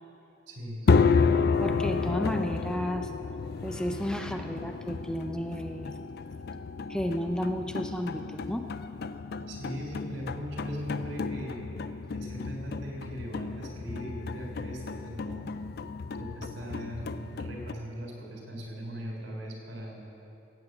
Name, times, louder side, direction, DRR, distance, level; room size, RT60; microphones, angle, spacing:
voice 1, 0.5-0.9 9.5-11.6 12.1-15.4 16.1-20.0, equal, 80° right, -1 dB, 3.5 m, -39 dB
sound 1, 0.9-17.7, left 4 dB, 55° left, 0.4 m, -31 dB
voice 2, 1.6-3.1 3.6-6.0 6.9-8.7, equal, 5° left, 5 dB, 0.5 m, -32 dB
16.0 x 8.5 x 7.7 m, 2.9 s
head